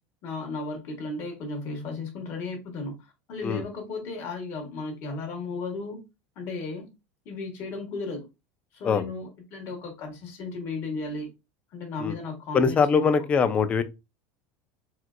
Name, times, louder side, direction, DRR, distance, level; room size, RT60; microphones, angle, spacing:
voice 1, 0.2-6.0 6.4-6.9 7.2-8.2 8.7-11.3 11.7-13.0, left 3 dB, 45° left, 1.2 m, -35 dB
voice 2, 12.5-13.8, left 5 dB, 20° left, 0.3 m, -22 dB
4.2 x 2.4 x 2.2 m
supercardioid pair, 150°, 6 cm